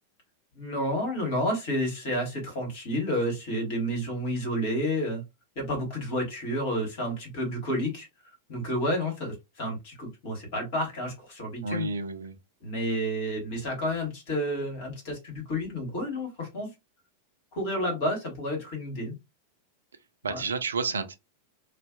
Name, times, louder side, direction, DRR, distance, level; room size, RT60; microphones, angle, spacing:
voice 1, 0.5-5.2 5.5-8.1 8.5-11.9 12.6-16.7 17.5-19.1 20.3-20.4, equal, 50° left, 1.3 m, -30 dB
voice 2, 11.6-12.4 20.2-21.2, right 4 dB, 70° right, 0.4 m, -30 dB
2.5 x 2.1 x 2.4 m
figure-of-eight pair, 90°, 0 cm